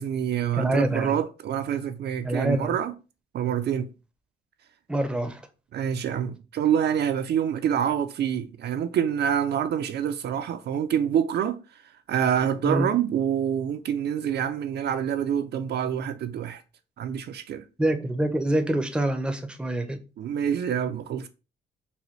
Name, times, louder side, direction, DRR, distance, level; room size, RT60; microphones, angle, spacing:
voice 1, 0.0-2.9 3.3-3.9 5.7-11.6 12.1-16.6 17.0-17.6 20.2-21.3, right 9 dB, 55° right, 0.4 m, -26 dB
voice 2, 0.5-1.2 2.2-2.8 4.9-5.4 12.6-12.9 17.8-20.0, right 1 dB, 5° right, 0.5 m, -26 dB
4.1 x 2.2 x 3.1 m
cardioid pair, 90°, 20 cm